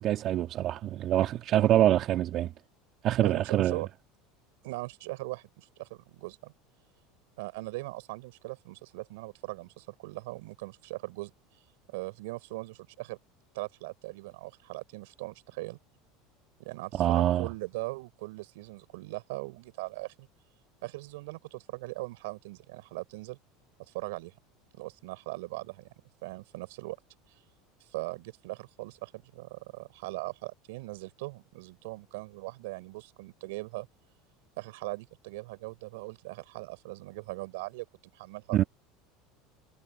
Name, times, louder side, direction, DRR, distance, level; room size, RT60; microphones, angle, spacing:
voice 1, 0.0-2.5 3.0-3.8 17.0-17.5 38.5-38.6, right 12 dB, 50° right, 1.6 m, -25 dB
voice 2, 3.2-3.9 4.6-6.5 7.4-11.3 11.9-13.2 13.5-15.8 16.6-20.3 20.8-23.4 23.9-24.3 24.7-25.9 26.2-27.0 27.9-33.9 34.6-37.8 38.1-38.7, right 22 dB, 80° right, 5.0 m, -40 dB
supercardioid pair, 110°, 0 cm